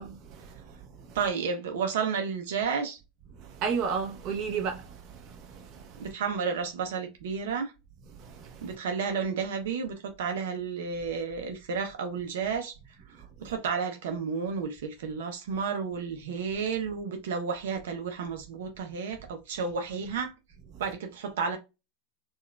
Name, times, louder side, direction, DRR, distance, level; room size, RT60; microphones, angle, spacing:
voice 1, 0.0-1.2 3.3-6.1 8.1-8.8 13.4-13.5, right 6 dB, 45° right, 0.9 m, -35 dB
voice 2, 1.1-3.0 6.0-7.7 8.6-12.7 13.4-20.3 20.8-21.6, right 5 dB, 85° right, 0.6 m, -31 dB
4.3 x 2.3 x 2.2 m
supercardioid pair, 135°, 0 cm